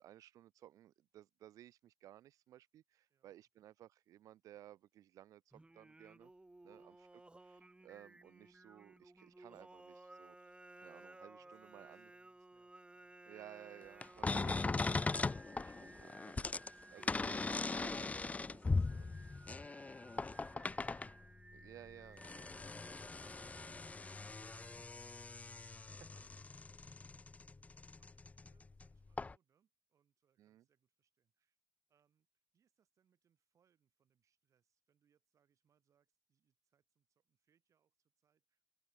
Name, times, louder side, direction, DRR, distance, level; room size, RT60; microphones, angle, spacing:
voice 1, 0.0-5.4 5.7-6.3 6.6-12.1 13.2-14.6 15.0-16.5 16.9-17.5 17.8-18.6 18.9-19.1 21.5-22.2 25.5-25.6 30.4-30.6, right 12 dB, 85° right, 1.5 m, -58 dB
Singing, 5.5-25.1, right 2 dB, 20° right, 2.0 m, -59 dB
voice 2, 11.3-13.7 18.7-21.4 21.7-31.6 31.9-38.6, right 8 dB, 70° right, 7.5 m, -81 dB
sound 1, 14.0-21.2 21.9-28.9 29.1-29.3, left 3 dB, 25° left, 0.4 m, -40 dB
open air
supercardioid pair, 50°, 6 cm